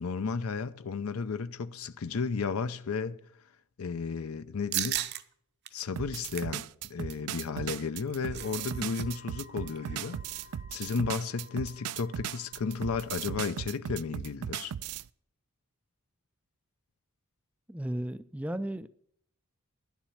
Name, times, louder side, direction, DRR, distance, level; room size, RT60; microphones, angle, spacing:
voice 1, 0.0-3.2 3.8-5.0 5.7-10.2 10.7-14.7, left 5 dB, 70° left, 0.6 m, -33 dB
sound 1, 4.7-5.2 5.6-5.7 6.1-6.6 7.9-9.0 9.3-9.4 9.8-10.0, right 12 dB, 50° right, 0.6 m, -35 dB
sound 2, 6.0-15.1, right 9 dB, 90° right, 0.4 m, -37 dB
sound 3, 8.4-13.4, left 5 dB, 50° left, 2.4 m, -55 dB
voice 2, 17.7-18.9, right 1 dB, 5° right, 0.4 m, -34 dB
10.5 x 7.2 x 7.2 m
head